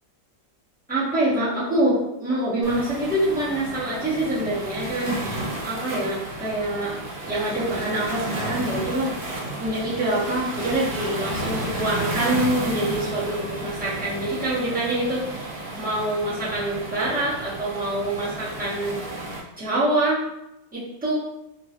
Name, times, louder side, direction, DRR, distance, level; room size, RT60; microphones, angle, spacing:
voice 1, 0.9-6.9 7.2-9.1 9.6-15.5 15.8-19.0 19.6-20.2 20.7-21.1, right 1 dB, 5° right, -10 dB, 0.8 m, -25 dB
Waves surf, 2.6-19.4, right 1 dB, 65° right, 1.2 m, -32 dB
3.5 x 2.2 x 2.9 m, 0.84 s
omnidirectional pair, 1.9 m